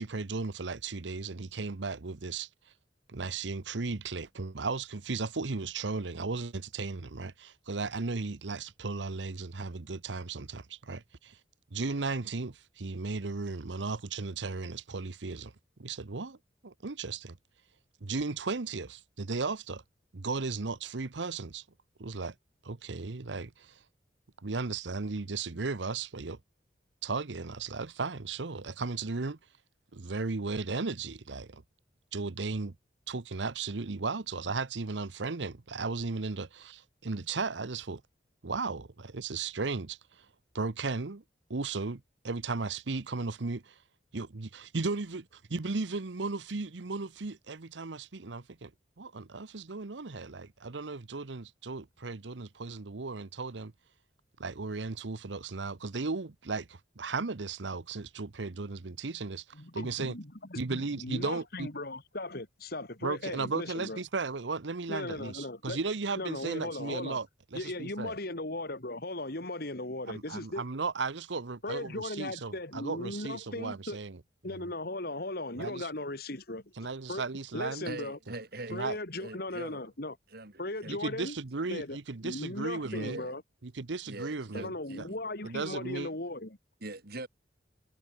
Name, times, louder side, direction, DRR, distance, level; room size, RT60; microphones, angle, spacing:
voice 1, 0.0-2.5 3.1-11.4 11.7-15.5 15.8-16.4 16.6-17.4 18.0-19.8 20.1-21.6 22.0-22.3 22.6-23.8 24.4-26.4 27.0-29.4 29.9-31.6 32.1-32.7 33.1-38.0 38.4-40.3 40.5-41.2 41.5-43.8 44.1-48.7 49.0-53.7 54.4-59.4 59.7-60.2 60.5-61.7 63.0-68.1 70.1-74.2 74.5-74.7 75.6-75.9 76.8-77.9 78.7-79.0 80.9-83.2 83.6-84.7 85.0-85.1 85.4-86.1, right 4 dB, 90° right, 1.0 m, -35 dB
voice 2, 59.5-64.0 64.9-65.8 66.2-67.2 67.5-70.6 71.6-74.0 74.4-76.7 77.1-77.2 77.5-78.2 78.7-80.1 80.6-81.4 81.7-82.0 82.2-83.4 84.5-86.6, left 2 dB, 60° left, 3.6 m, -37 dB
voice 3, 77.8-78.8 79.2-79.8 80.3-81.0 82.8-83.3 84.1-85.2 86.8-87.3, right 2 dB, 60° right, 3.3 m, -42 dB
head